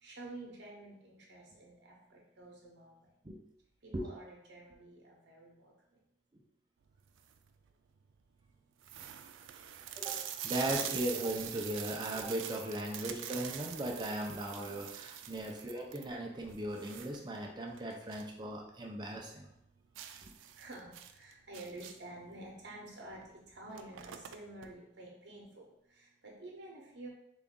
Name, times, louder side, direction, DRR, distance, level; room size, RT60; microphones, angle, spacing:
voice 1, 0.0-3.0 3.8-5.7 20.6-23.2 23.5-25.6 25.9-27.1, right 2 dB, 65° right, -2 dB, 0.9 m, -50 dB
sound 1, 7.0-7.5 8.1-8.2 8.4-8.5 8.8-18.4 18.7-18.8 19.2-19.3 20.0-22.2 23.1-23.3 23.5-24.7, right 10 dB, 90° right, 0.3 m, -44 dB
voice 2, 10.0-19.5 20.2-20.3, right 1 dB, 25° right, 0 dB, 0.5 m, -38 dB
3.9 x 2.4 x 3.7 m, 0.81 s
head